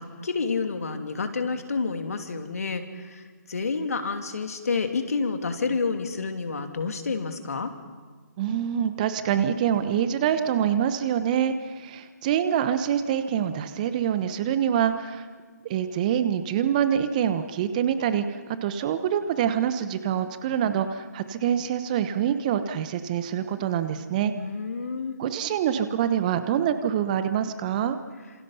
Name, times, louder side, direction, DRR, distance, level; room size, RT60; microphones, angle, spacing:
voice 1, 0.0-3.2 3.5-7.7 24.3-25.2, left 4 dB, 55° left, 6 dB, 2.8 m, -29 dB
voice 2, 8.4-15.3 15.6-18.2 18.6-24.3 25.2-28.0, right 9 dB, 25° right, 10 dB, 1.2 m, -25 dB
29.5 x 27.0 x 5.7 m, 1.4 s
figure-of-eight pair, 140°, 9 cm